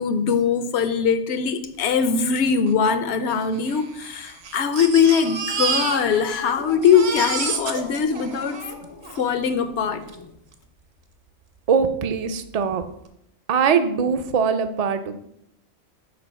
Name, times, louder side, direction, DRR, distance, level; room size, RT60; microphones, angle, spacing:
voice 1, 0.0-8.6 9.2-10.0, left 6 dB, 70° left, 1.0 m, -21 dB
Crying sobbing, 2.4-2.5 2.7-2.8 3.5-6.4 6.7-9.3 10.1-10.2 10.5-10.6, right 5 dB, 65° right, 1.1 m, -29 dB
Cat, 5.7-10.3, left 5 dB, 40° left, 0.3 m, -38 dB
voice 2, 11.7-12.8 13.5-15.2, right 6 dB, 45° right, 0.5 m, -21 dB
6.8 x 4.9 x 5.4 m
omnidirectional pair, 1.2 m